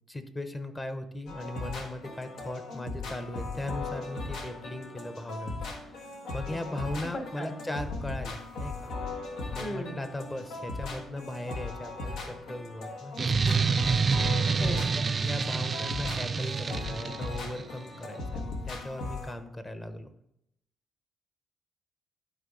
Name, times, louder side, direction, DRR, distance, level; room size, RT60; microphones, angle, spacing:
voice 1, 0.1-8.9 9.5-20.1, left 1 dB, 20° left, 9 dB, 0.9 m, -38 dB
sound 1, 1.3-19.3, left 3 dB, 80° left, 1.4 m, -38 dB
voice 2, 7.1-7.6 9.6-10.0 14.6-14.9, left 1 dB, 55° left, 2 dB, 2.3 m, -37 dB
sound 2, 13.2-17.6, right 5 dB, 40° right, 0.4 m, -27 dB
11.5 x 4.7 x 3.9 m, 0.79 s
cardioid pair, 90°, 0 cm